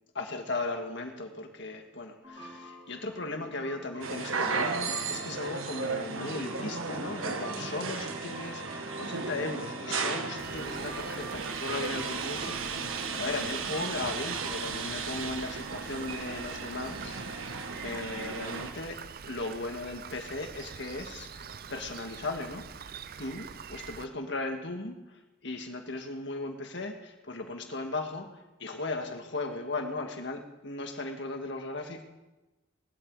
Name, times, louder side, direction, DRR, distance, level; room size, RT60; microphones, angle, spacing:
voice 1, 0.1-19.0 19.3-22.9 23.2-32.0, left 2 dB, 60° left, 4 dB, 1.8 m, -37 dB
sound 1, 2.2-14.8, equal, 25° right, 3.6 m, -45 dB
sound 2, 4.0-18.7, right 4 dB, 80° right, 1.5 m, -35 dB
Rain, 10.4-24.1, right 6 dB, 45° right, 0.6 m, -45 dB
19.0 x 12.0 x 4.9 m, 1.1 s
head